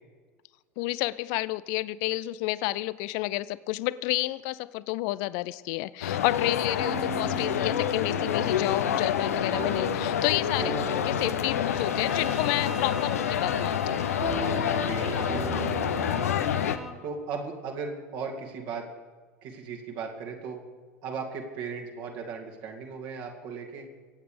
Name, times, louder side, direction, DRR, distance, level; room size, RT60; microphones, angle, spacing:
voice 1, 0.8-14.1, left 19 dB, 50° left, 18 dB, 0.5 m, -30 dB
sound 1, 6.0-16.8, left 9 dB, 70° left, 0.9 m, -28 dB
sound 2, 6.8-16.7, right 3 dB, 25° right, 2.3 m, -38 dB
Bowed string instrument, 11.7-17.1, left 1 dB, 5° right, 2.1 m, -41 dB
voice 2, 14.5-16.4 17.0-18.9 19.4-20.6 21.0-23.9, right 5 dB, 50° right, 1 dB, 2.4 m, -37 dB
24.0 x 8.7 x 5.1 m, 1.4 s
figure-of-eight pair, 75°, 8 cm